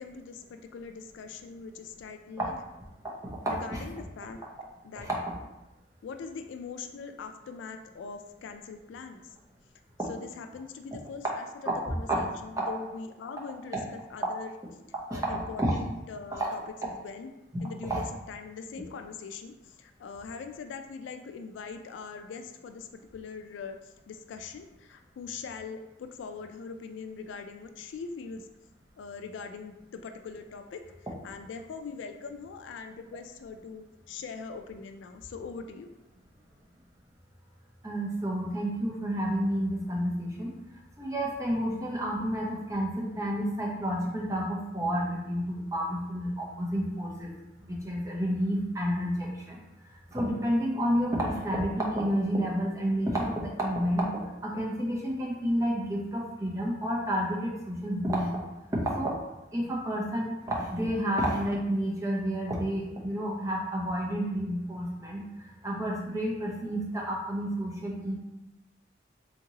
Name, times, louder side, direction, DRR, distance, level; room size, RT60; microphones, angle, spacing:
voice 1, 0.0-2.5 3.5-4.4 4.8-5.1 6.0-9.2 10.1-14.5 15.1-17.3 17.6-23.8 24.1-28.5 29.0-30.8 31.2-35.9, left 5 dB, 75° left, 6 dB, 0.3 m, -42 dB
voice 2, 3.2-3.8 5.0-5.2 10.0-10.1 12.1-12.2 12.6-12.7 15.1-15.2 15.6-15.7 16.3-16.5 17.9-18.0 37.8-40.5 41.0-47.3 47.7-49.6 50.1-54.1 54.4-58.3 58.7-59.2 59.5-68.1, equal, 15° right, -3 dB, 0.6 m, -30 dB
3.6 x 2.9 x 2.7 m, 0.97 s
head